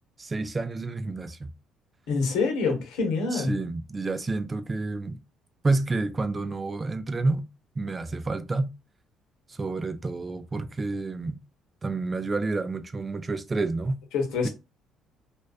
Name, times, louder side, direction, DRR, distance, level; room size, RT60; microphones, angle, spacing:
voice 1, 0.2-1.5 2.7-2.8 3.3-5.2 5.6-7.5 7.8-8.7 9.5-11.4 11.8-14.0, right 3 dB, 25° right, 0.3 m, -29 dB
voice 2, 2.1-3.5 14.1-14.5, left 4 dB, 90° left, 0.8 m, -26 dB
2.4 x 2.2 x 2.3 m
cardioid pair, 100°, 0 cm